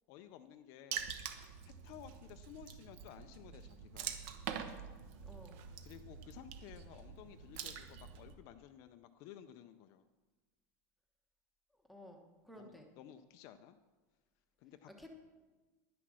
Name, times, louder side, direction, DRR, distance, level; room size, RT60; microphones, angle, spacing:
voice 1, 0.1-1.1 1.6-4.2 5.8-10.0 12.6-13.8 14.6-14.9, left 10 dB, 40° left, 9 dB, 0.5 m, -55 dB
Water / Splash splatter, 0.9-8.3, right 8 dB, 50° right, 1.0 m, -46 dB
voice 2, 5.2-5.6 11.9-12.8 15.0-15.2, left 1 dB, ahead, 3 dB, 1.1 m, -54 dB
10.5 x 10.0 x 6.2 m, 1.3 s
supercardioid pair, 175°, 8 cm